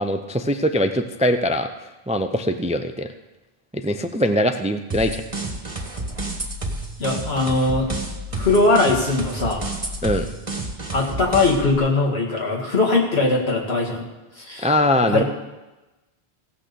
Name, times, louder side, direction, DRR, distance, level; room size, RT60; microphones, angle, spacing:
voice 1, 0.0-1.7 2.1-3.1 3.7-5.2 10.0-10.3 14.6-15.2, left 1 dB, 10° right, 7 dB, 0.4 m, -21 dB
sound 1, 4.9-11.8, right 2 dB, 30° right, 1.5 m, -30 dB
voice 2, 7.0-7.9 8.3-9.8 10.9-14.1 14.4-14.7 15.1-15.2, left 3 dB, 75° left, -1 dB, 2.4 m, -20 dB
16.5 x 6.2 x 6.8 m, 1.1 s
omnidirectional pair, 1.1 m